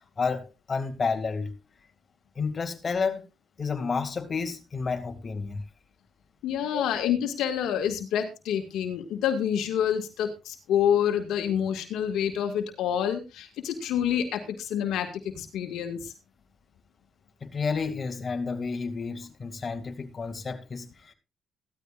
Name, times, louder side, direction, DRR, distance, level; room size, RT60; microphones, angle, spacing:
voice 1, 0.2-1.6 2.4-3.2 3.6-5.6 6.7-6.9 17.4-21.1, left 5 dB, 35° left, 2.4 m, -30 dB
voice 2, 6.4-16.1, left 9 dB, 85° left, 2.0 m, -27 dB
15.0 x 13.0 x 2.5 m
cardioid pair, 90°, 0 cm